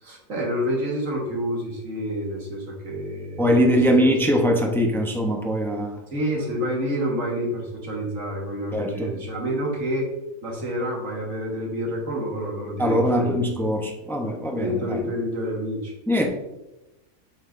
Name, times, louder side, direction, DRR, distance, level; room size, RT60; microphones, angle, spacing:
voice 1, 0.0-4.0 6.1-10.1 10.4-13.4 14.5-15.9, equal, 60° right, -1 dB, 1.9 m, -28 dB
voice 2, 3.4-6.0 8.7-9.2 12.8-15.0 16.1-16.3, equal, 5° left, 1 dB, 0.4 m, -22 dB
7.8 x 5.7 x 2.6 m, 0.97 s
omnidirectional pair, 1.6 m